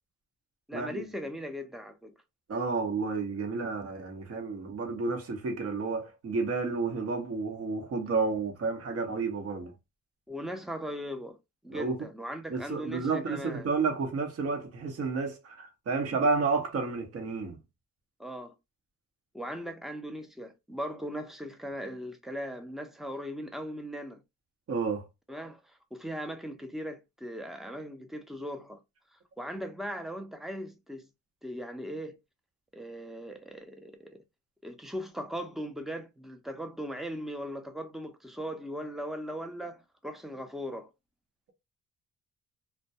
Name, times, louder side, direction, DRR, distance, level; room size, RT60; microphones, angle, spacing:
voice 1, 0.7-2.1 10.3-11.4 11.6-13.7 18.2-18.5 19.3-24.2 25.3-28.8 29.4-31.1 31.4-32.2 32.7-34.2 34.6-40.9, equal, ahead, 0.5 m, -39 dB
voice 2, 2.5-9.7 11.7-12.0 12.5-17.6 24.7-25.1, right 4 dB, 50° right, 0.9 m, -31 dB
2.2 x 2.2 x 2.7 m
cardioid pair, 90°, 30 cm